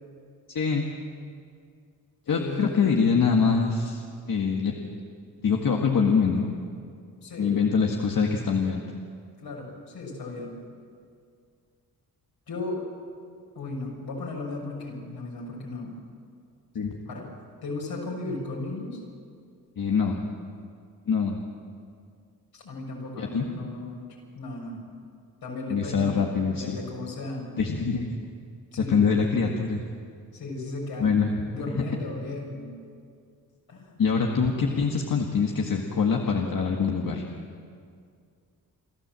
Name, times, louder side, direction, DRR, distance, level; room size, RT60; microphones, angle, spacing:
voice 1, 0.5-0.9 2.3-4.8 5.4-6.6 7.4-8.8 16.8-16.9 19.8-20.2 21.1-21.4 23.2-23.5 25.7-26.8 27.6-28.1 28.8-29.8 31.0-31.3 34.0-37.2, left 5 dB, 60° left, 0 dB, 1.9 m, -24 dB
voice 2, 2.2-2.9 7.2-7.6 9.4-10.6 12.5-12.9 13.5-16.0 16.8-17.3 17.6-19.0 22.5-24.0 24.3-24.8 25.4-27.5 28.7-29.1 30.3-31.1 31.4-32.7 33.7-33.9, left 2 dB, 75° left, -2 dB, 6.4 m, -36 dB
28.5 x 13.0 x 7.7 m, 2.2 s
cardioid pair, 65°, 37 cm